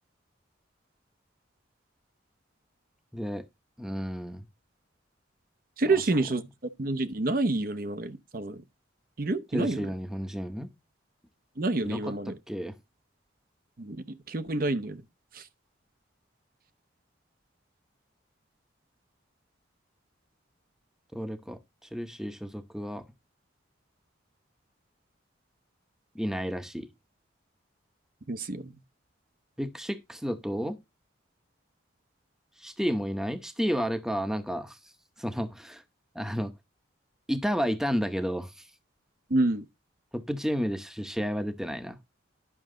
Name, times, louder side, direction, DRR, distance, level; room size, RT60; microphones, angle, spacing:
voice 1, 3.1-3.5 3.8-4.4 9.5-10.7 11.8-12.1 12.5-12.7 21.1-21.6 21.9-23.0 26.1-26.9 29.6-30.8 32.6-34.8 35.2-35.8 36.1-36.5 37.3-38.5 40.1-42.0, equal, 5° right, 0.8 m, -31 dB
voice 2, 5.8-6.4 6.8-8.6 9.2-9.9 11.6-12.4 13.8-15.0 15.3-15.5 28.3-28.7 39.3-39.7, right 2 dB, 50° right, 0.8 m, -28 dB
11.0 x 6.1 x 3.7 m
head